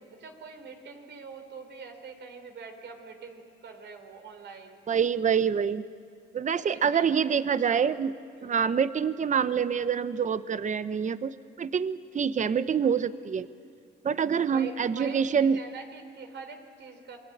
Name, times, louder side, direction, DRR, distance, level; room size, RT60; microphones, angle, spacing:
voice 1, 0.1-4.8 6.7-7.3 7.7-8.0 8.4-8.6 14.4-17.2, right 5 dB, 65° right, 5 dB, 3.8 m, -44 dB
voice 2, 4.9-5.8 6.3-8.2 8.4-13.5 14.0-15.6, right 7 dB, 40° right, 14 dB, 0.9 m, -26 dB
28.0 x 21.5 x 8.7 m, 2.1 s
cardioid pair, 90°, 20 cm